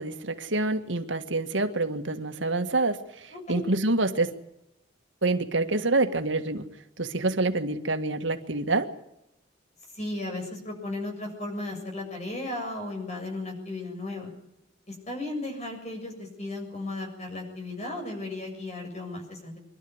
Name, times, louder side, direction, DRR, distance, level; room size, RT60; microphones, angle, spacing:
voice 1, 0.0-4.3 5.2-6.7 7.0-8.9, right 2 dB, 75° right, 7 dB, 1.9 m, -27 dB
voice 2, 3.3-3.6 9.9-14.3 14.9-19.6, left 2 dB, 35° left, 3 dB, 7.3 m, -35 dB
25.0 x 12.5 x 9.8 m, 0.83 s
head